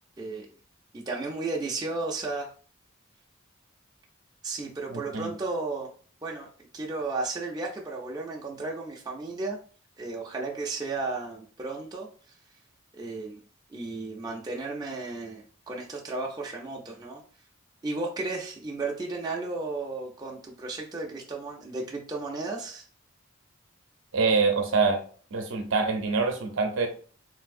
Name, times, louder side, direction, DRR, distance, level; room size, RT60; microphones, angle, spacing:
voice 1, 0.9-2.5 4.4-5.9 6.2-6.5 6.7-9.6 10.0-12.1 12.9-13.4 13.7-17.2 17.8-22.9, right 3 dB, 20° right, -2 dB, 0.4 m, -34 dB
voice 2, 4.9-5.3 24.1-25.0 25.3-26.9, right 4 dB, 65° right, 4 dB, 0.6 m, -25 dB
3.3 x 2.7 x 2.5 m, 0.42 s
head